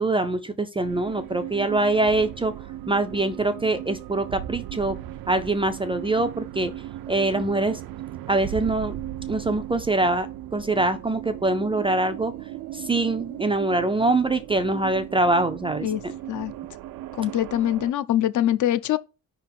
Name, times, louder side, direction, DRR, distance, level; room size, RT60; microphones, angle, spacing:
voice 1, 0.0-2.5 2.9-5.0 5.3-6.7 7.1-7.8 8.3-9.0 9.3-12.3 12.7-15.9, right 2 dB, 15° right, 0.3 m, -24 dB
sound 1, 0.8-17.9, right 13 dB, 75° right, 0.5 m, -37 dB
voice 2, 17.1-19.0, left 12 dB, 60° left, 0.5 m, -23 dB
5.3 x 3.5 x 5.7 m
cardioid pair, 180°, 35 cm